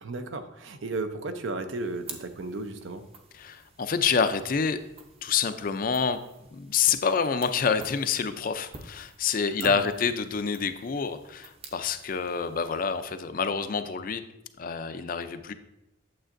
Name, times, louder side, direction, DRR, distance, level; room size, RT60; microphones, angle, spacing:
voice 1, 0.0-3.1 9.6-9.8, right 2 dB, 70° right, 8 dB, 0.6 m, -34 dB
sound 1, 1.7-13.4, right 4 dB, 30° right, 0.7 m, -50 dB
voice 2, 3.3-4.8 5.2-6.2 6.5-14.2 14.6-15.5, left 6 dB, 45° left, 10 dB, 0.4 m, -27 dB
8.8 x 7.5 x 2.6 m, 0.90 s
head